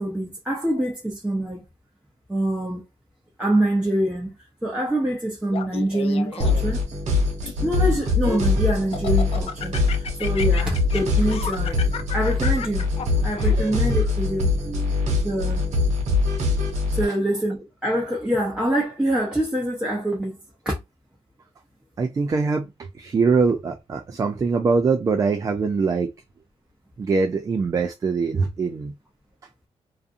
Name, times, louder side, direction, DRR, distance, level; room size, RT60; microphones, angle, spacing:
voice 1, 0.0-1.6 2.3-2.8 3.4-4.3 4.6-6.8 7.6-11.8 12.1-12.9 13.2-14.5 15.2-15.7 16.9-20.4 20.7-20.8, right 1 dB, 10° right, 0.7 m, -25 dB
Laughter, 5.5-6.8 7.4-8.5 8.9-14.0, left 6 dB, 60° left, 0.4 m, -33 dB
sound 1, 6.4-17.1, left 3 dB, 85° right, 1.1 m, -23 dB
voice 2, 14.7-15.3 17.0-17.1 22.0-26.1 27.0-28.9, right 4 dB, 30° right, 0.3 m, -23 dB
2.5 x 2.4 x 2.5 m
wide cardioid pair, 145°, 12 cm